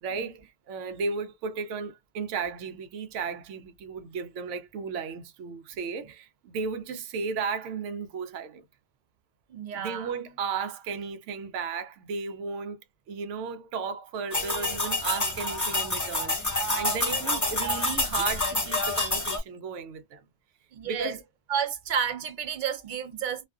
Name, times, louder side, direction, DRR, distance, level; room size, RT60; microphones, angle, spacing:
voice 1, 0.0-8.6 9.7-12.8 13.1-20.2 20.8-21.2, right 5 dB, 85° right, 0.9 m, -34 dB
voice 2, 9.5-10.1 20.7-21.2 21.5-23.5, right 7 dB, 60° right, 0.5 m, -31 dB
sound 1, 14.3-19.4, left 2 dB, 20° left, 0.6 m, -28 dB
2.4 x 2.3 x 2.3 m
omnidirectional pair, 1.2 m